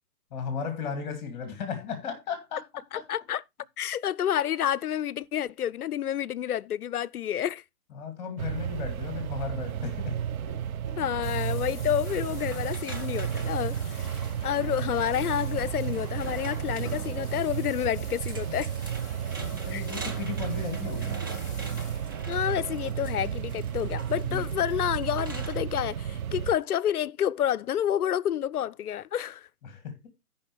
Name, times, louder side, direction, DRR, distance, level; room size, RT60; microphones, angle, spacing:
voice 1, 0.3-2.6 2.9-3.0 7.9-10.2 10.5-10.6 10.8-11.0 13.4-13.5 14.5-14.6 19.4-21.2 24.2-24.4 29.6-30.0, left 6 dB, 30° left, 2.3 m, -35 dB
voice 2, 2.9-3.4 3.8-7.6 11.0-13.8 14.4-18.7 19.7-19.8 22.3-29.5, left 10 dB, 75° left, 0.5 m, -29 dB
sound 1, 8.4-26.6, right 9 dB, 70° right, 0.7 m, -33 dB
sound 2, 11.2-23.9, left 5 dB, 10° left, 0.8 m, -50 dB
sound 3, 12.0-25.6, right 2 dB, 15° right, 0.5 m, -45 dB
14.5 x 5.4 x 3.2 m
figure-of-eight pair, 145°, 45 cm